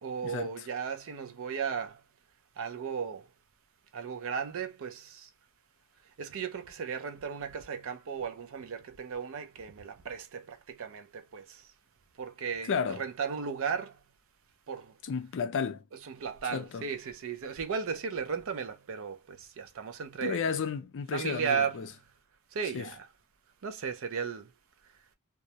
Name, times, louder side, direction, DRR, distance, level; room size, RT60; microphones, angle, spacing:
voice 1, 0.0-2.0 2.6-3.2 3.9-5.3 6.2-11.6 12.2-12.7 13.0-14.0 14.7-14.9 16.1-20.5 21.1-21.8 22.5-23.1 23.6-24.5, right 6 dB, 60° right, 0.4 m, -35 dB
voice 2, 12.6-13.0 15.0-15.8 16.4-16.9 20.2-21.9 22.7-22.9, left 6 dB, 55° left, 0.4 m, -32 dB
2.3 x 2.0 x 2.7 m
head